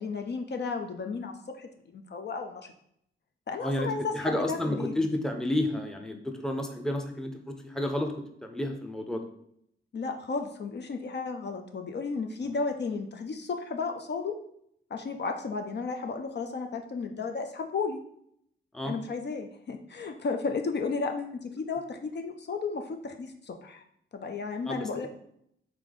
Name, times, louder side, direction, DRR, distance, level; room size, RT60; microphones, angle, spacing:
voice 1, 0.0-2.7 3.5-4.9 9.9-14.3 14.9-18.0 18.8-23.8 24.1-25.1, left 4 dB, 55° left, 5 dB, 0.5 m, -33 dB
voice 2, 3.6-9.2 12.4-12.5 18.7-19.0 24.7-25.1, left 1 dB, 5° left, 4 dB, 0.6 m, -31 dB
3.6 x 3.3 x 3.8 m, 0.71 s
cardioid pair, 75°, 21 cm